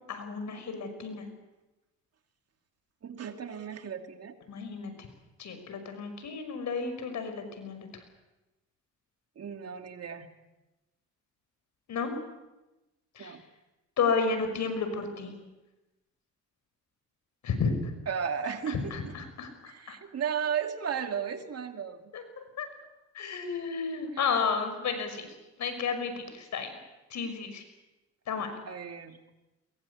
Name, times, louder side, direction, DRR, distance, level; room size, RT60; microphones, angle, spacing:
voice 1, 0.1-1.2 4.5-5.1 5.4-7.9 11.9-12.1 13.2-13.4 14.0-15.3 17.4-17.7 18.7-20.0 22.1-22.2 22.6-22.7 23.1-25.3 25.6-26.7 27.1-27.6 28.3-28.5, left 5 dB, 65° left, 8 dB, 5.8 m, -32 dB
voice 2, 3.0-4.3 9.4-10.3 13.2-13.4 18.1-19.1 19.7-22.0 24.1-24.3 28.6-29.2, right 7 dB, 55° right, 6 dB, 2.6 m, -35 dB
22.5 x 22.0 x 8.4 m, 1.0 s
cardioid pair, 90°, 30 cm